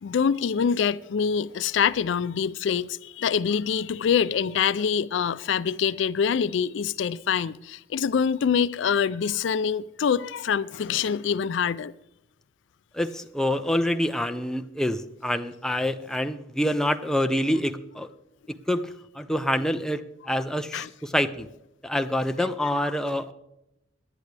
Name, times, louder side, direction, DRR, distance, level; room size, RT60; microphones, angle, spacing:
voice 1, 0.0-11.9 20.7-20.9 22.8-22.9, left 7 dB, 65° left, 0.4 m, -25 dB
voice 2, 12.9-18.1 18.5-21.5 21.8-23.3, left 1 dB, 5° left, 0.5 m, -26 dB
18.5 x 10.5 x 3.3 m
head